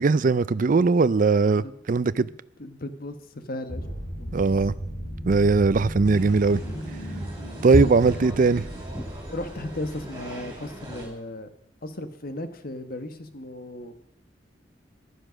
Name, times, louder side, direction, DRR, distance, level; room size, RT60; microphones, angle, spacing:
voice 1, 0.0-2.3 4.3-4.7 5.3-6.6 7.6-8.6, right 4 dB, 45° right, 0.4 m, -20 dB
voice 2, 2.2-3.8 4.2-4.6 9.3-11.5 11.8-13.9, left 1 dB, 55° left, 1.4 m, -36 dB
sound 1, 3.7-10.5, equal, 80° left, 7.2 m, -36 dB
sound 2, 6.0-11.1, equal, 20° right, 5.3 m, -33 dB
15.0 x 11.0 x 6.3 m
head